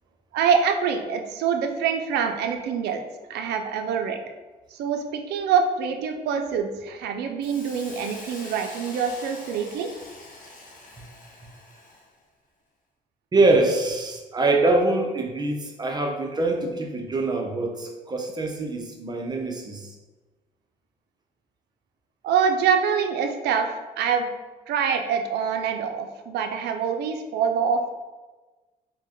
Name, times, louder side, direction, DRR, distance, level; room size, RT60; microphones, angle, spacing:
voice 1, 0.3-3.0 3.3-4.2 4.7-9.9 22.2-24.3 24.7-27.8, right 6 dB, 80° right, 5 dB, 0.4 m, -25 dB
Hiss, 7.4-12.1, left 2 dB, 55° left, 1.0 m, -44 dB
voice 2, 13.3-19.9, right 2 dB, 25° right, 2 dB, 0.6 m, -24 dB
4.4 x 2.1 x 2.9 m, 1.2 s
cardioid pair, 95°, 17 cm